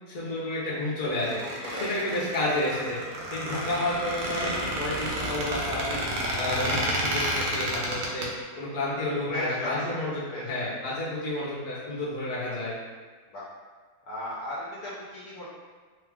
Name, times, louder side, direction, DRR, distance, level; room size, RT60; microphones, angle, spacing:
voice 1, 0.1-1.4 1.7-3.0 3.3-6.0 6.3-8.3 8.6-12.7, left 1 dB, 45° left, -7 dB, 1.0 m, -30 dB
Squeak, 1.0-8.3, right 1 dB, 65° right, 1.0 m, -30 dB
voice 2, 1.4-1.9 3.5-3.6 9.3-10.8 13.3-13.5 14.0-15.5, left 1 dB, 70° left, -7 dB, 1.1 m, -36 dB
3.1 x 2.4 x 3.5 m, 1.5 s
omnidirectional pair, 1.8 m